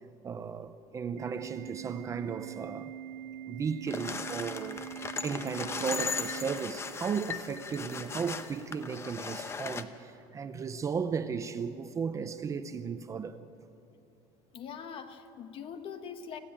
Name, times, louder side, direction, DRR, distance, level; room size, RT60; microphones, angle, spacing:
voice 1, 0.2-3.0 3.5-4.9 5.2-13.4, right 6 dB, 20° right, 0.6 m, -35 dB
Organ, 1.2-7.2, right 10 dB, 80° right, 0.6 m, -43 dB
sound 1, 3.9-9.8, left 5 dB, 20° left, 0.8 m, -38 dB
voice 2, 14.5-16.4, left 7 dB, 40° left, 1.4 m, -42 dB
26.5 x 15.5 x 8.7 m
cardioid pair, 165°, 14 cm